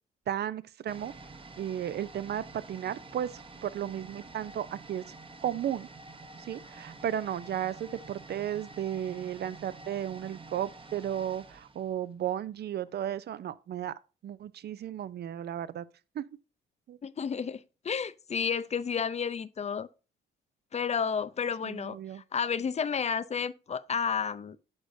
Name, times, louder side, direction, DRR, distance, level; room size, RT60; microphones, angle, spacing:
voice 1, 0.3-1.1 1.6-5.0 5.4-5.9 6.4-13.9 14.2-15.9 16.1-16.2 16.9-17.0 21.6-22.2, right 10 dB, 55° right, 0.6 m, -34 dB
sound 1, 0.9-12.6 12.9-13.0, right 3 dB, 25° right, 1.0 m, -49 dB
voice 2, 17.0-19.9 20.7-22.0 22.3-24.6, left 6 dB, 35° left, 0.6 m, -31 dB
9.7 x 6.3 x 2.7 m
cardioid pair, 90°, 20 cm